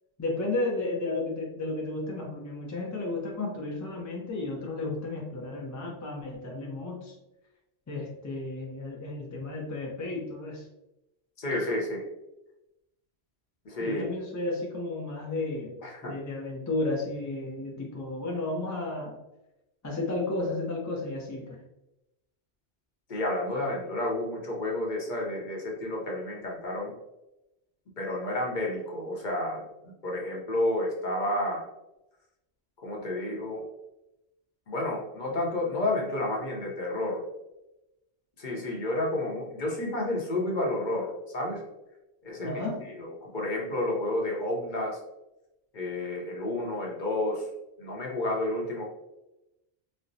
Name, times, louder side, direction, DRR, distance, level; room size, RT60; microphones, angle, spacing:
voice 1, 0.2-7.1 7.9-10.7 13.8-19.2 19.8-21.6 42.4-42.8, left 2 dB, 25° left, -1 dB, 0.4 m, -33 dB
voice 2, 11.4-12.0 13.6-14.0 15.8-16.2 23.1-26.9 28.0-31.7 32.8-33.6 34.7-37.2 38.4-41.6 42.2-45.0 45.7-47.5 47.8-48.8, left 1 dB, 50° left, -1 dB, 0.8 m, -31 dB
4.3 x 2.0 x 2.6 m, 0.92 s
omnidirectional pair, 1.1 m